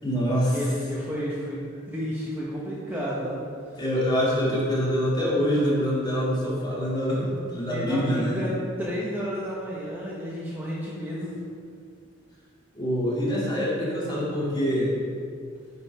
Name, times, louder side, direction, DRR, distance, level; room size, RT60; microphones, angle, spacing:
voice 1, 0.0-0.6 3.8-8.5 12.7-15.0, equal, 20° left, -7 dB, 2.5 m, -25 dB
voice 2, 0.5-3.4 7.6-11.4, equal, 10° right, -7 dB, 1.2 m, -32 dB
9.4 x 5.4 x 5.5 m, 2.3 s
head